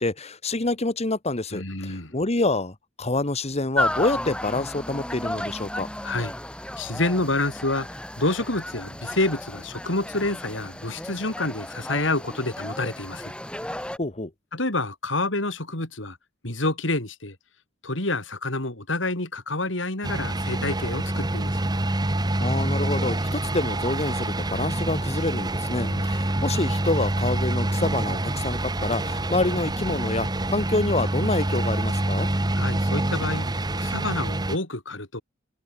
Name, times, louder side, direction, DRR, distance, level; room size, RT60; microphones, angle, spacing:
voice 1, 0.0-5.9 14.0-14.3 22.4-32.3, left 2 dB, 35° left, 1.5 m, -27 dB
voice 2, 1.5-2.1 6.0-6.3 6.8-13.3 14.5-16.2 16.4-17.3 17.8-21.7 25.7-26.1 32.6-33.5 33.8-35.2, left 2 dB, 70° left, 5.1 m, -28 dB
sound 1, 3.8-14.0, left 1 dB, 5° left, 4.2 m, -33 dB
sound 2, 20.0-34.6, right 1 dB, 20° right, 1.3 m, -26 dB
head